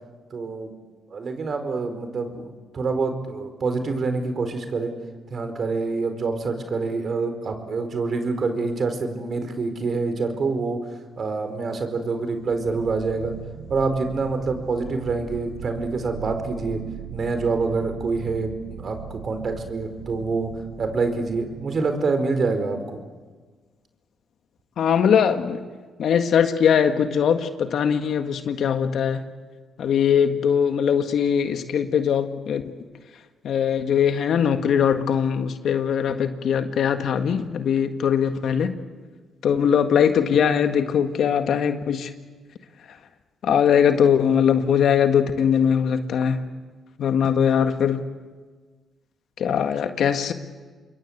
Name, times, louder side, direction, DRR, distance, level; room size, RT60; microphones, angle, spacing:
voice 1, 0.3-0.7 1.1-2.5 2.7-4.9 5.3-10.8 11.2-13.3 13.7-16.8 17.1-20.5 20.8-23.0, right 4 dB, 55° right, 7 dB, 4.6 m, -26 dB
sound 1, 12.4-22.2, right 7 dB, 90° right, 2.3 m, -39 dB
voice 2, 24.8-25.6 26.0-29.2 29.8-32.6 33.4-38.7 39.4-42.1 43.4-46.4 47.0-48.1 49.4-50.3, left 8 dB, 70° left, 7 dB, 1.7 m, -21 dB
27.5 x 22.0 x 8.1 m, 1.4 s
supercardioid pair, 60°, 0 cm